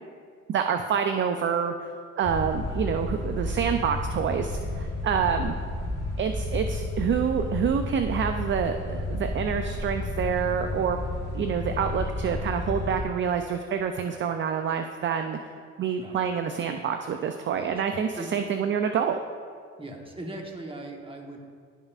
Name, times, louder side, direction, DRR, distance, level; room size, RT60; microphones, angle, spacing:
voice 1, 0.5-5.5 6.2-11.0 11.3-15.4 15.8-19.2, right 7 dB, 40° right, 6 dB, 0.4 m, -27 dB
sound 1, 2.2-13.0, left 2 dB, 55° left, 1.6 m, -32 dB
voice 2, 19.8-21.4, right 1 dB, 20° right, 2 dB, 1.0 m, -39 dB
11.5 x 5.4 x 2.4 m, 2.1 s
cardioid pair, 90°, 30 cm